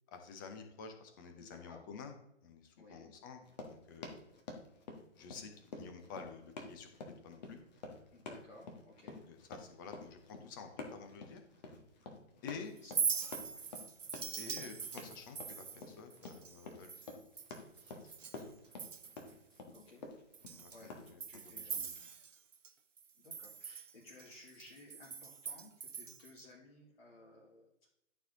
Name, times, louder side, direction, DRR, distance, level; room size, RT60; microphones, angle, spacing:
voice 1, 0.1-2.1 2.4-4.1 5.2-7.6 9.3-11.4 12.4-12.7 14.4-16.9 18.0-18.1 18.4-18.5 20.6-21.9, left 5 dB, 15° left, 6 dB, 0.7 m, -50 dB
voice 2, 1.4-1.9 2.8-3.1 8.1-9.2 12.8-12.9 13.3-13.6 19.7-20.0 20.7-21.7 23.2-27.9, left 2 dB, 50° left, -4 dB, 1.9 m, -58 dB
Run, 3.4-21.1, left 3 dB, 35° left, 1.4 m, -49 dB
Chink clink, 12.8-18.4 18.7-19.3 19.7-19.8 20.3-22.7 23.0-26.4, right 6 dB, 80° right, 0.7 m, -42 dB
11.5 x 4.6 x 3.8 m, 0.78 s
figure-of-eight pair, 130°, 37 cm